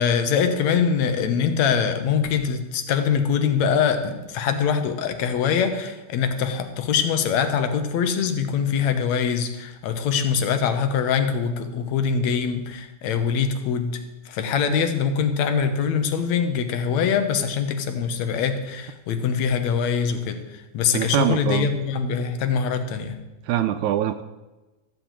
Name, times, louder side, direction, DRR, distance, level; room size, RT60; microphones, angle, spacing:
voice 1, 0.0-23.2, left 6 dB, 65° left, 8 dB, 2.2 m, -23 dB
voice 2, 20.9-21.7 23.5-24.2, right 12 dB, 80° right, 10 dB, 1.9 m, -23 dB
14.5 x 6.2 x 8.8 m, 1.1 s
omnidirectional pair, 3.6 m